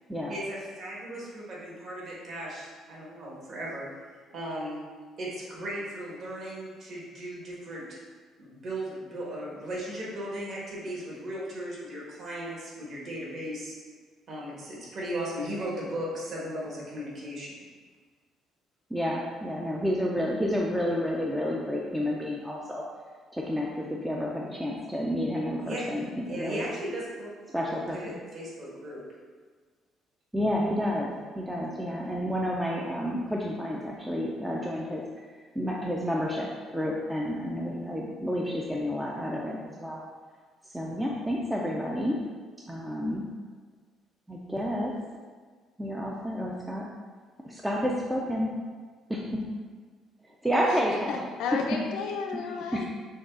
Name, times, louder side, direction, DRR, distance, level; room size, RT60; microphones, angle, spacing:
voice 1, 0.3-3.8 4.3-4.8 5.2-7.8 8.4-13.7 14.3-17.6 25.6-25.8 26.3-27.3 27.6-29.0, right 1 dB, 45° right, -5 dB, 1.4 m, -36 dB
voice 2, 18.9-22.8 23.3-26.7 27.5-28.0 30.3-31.1 31.4-35.0 35.6-40.0 40.7-42.2 42.7-43.2 44.3-44.9 45.8-46.9 47.4-48.5 49.1-49.4 50.4-51.2 52.3-52.4 52.7-52.9, equal, 5° right, -3 dB, 0.4 m, -30 dB
voice 3, 51.1-52.9, left 5 dB, 90° left, 2 dB, 0.5 m, -33 dB
6.2 x 2.4 x 3.6 m, 1.5 s
cardioid pair, 160°, 0 cm